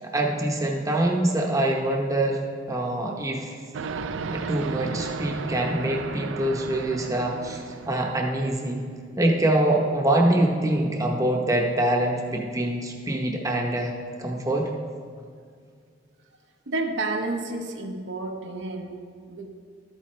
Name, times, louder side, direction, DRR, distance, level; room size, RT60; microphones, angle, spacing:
voice 1, 0.0-2.4 2.7-3.5 4.3-8.8 9.2-13.9 14.2-14.7, right 1 dB, 20° right, 0 dB, 0.8 m, -24 dB
sound 1, 3.7-8.5, right 4 dB, 85° right, 0.4 m, -34 dB
voice 2, 16.7-19.5, right 2 dB, 70° right, 3 dB, 0.8 m, -31 dB
12.0 x 8.6 x 3.1 m, 2.1 s
head